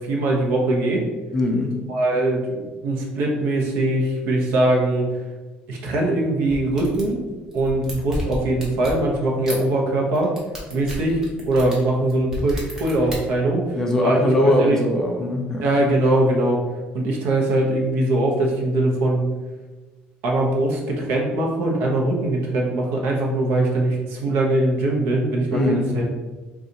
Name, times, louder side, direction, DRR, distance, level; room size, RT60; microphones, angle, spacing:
voice 1, 0.1-1.0 1.9-5.1 5.7-7.2 7.5-10.3 10.7-11.2 11.5-13.6 14.0-14.2 14.6-14.8 15.6-16.6 16.9-19.3 20.2-26.1, right 1 dB, 70° right, -1 dB, 0.7 m, -21 dB
voice 2, 1.3-1.8 13.7-15.6 25.5-25.9, left 1 dB, 15° left, 1 dB, 0.4 m, -21 dB
sound 1, 6.5-7.1 7.5-9.0 9.5-9.6 10.1-13.2, equal, 15° right, 0.7 m, -32 dB
2.7 x 2.3 x 3.9 m, 1.2 s
cardioid pair, 175°, 4 cm